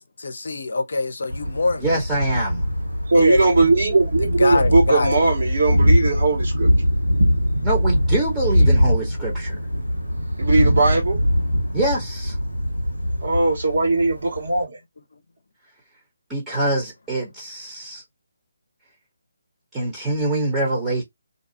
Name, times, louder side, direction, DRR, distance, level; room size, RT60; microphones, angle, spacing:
voice 1, 0.0-1.9 3.2-3.4 4.4-5.1, left 3 dB, 60° left, 0.6 m, -24 dB
Thunder, 1.3-14.6, equal, 85° right, 1.3 m, -22 dB
voice 2, 1.8-2.6 7.6-9.5 11.7-12.4 16.3-18.0 19.7-21.0, right 2 dB, 15° right, 1.0 m, -24 dB
voice 3, 3.1-6.7 10.4-11.2 13.2-14.8, right 3 dB, 60° right, 1.5 m, -19 dB
2.6 x 2.3 x 2.7 m
figure-of-eight pair, 145°, 0 cm